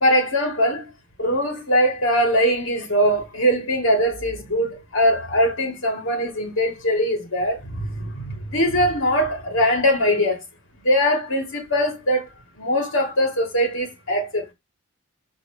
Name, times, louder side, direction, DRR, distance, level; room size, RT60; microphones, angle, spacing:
voice 1, 0.0-0.9 1.2-10.4 10.8-12.3 12.6-14.5, equal, 85° left, 2.2 m, -21 dB
6.3 x 3.7 x 4.9 m
head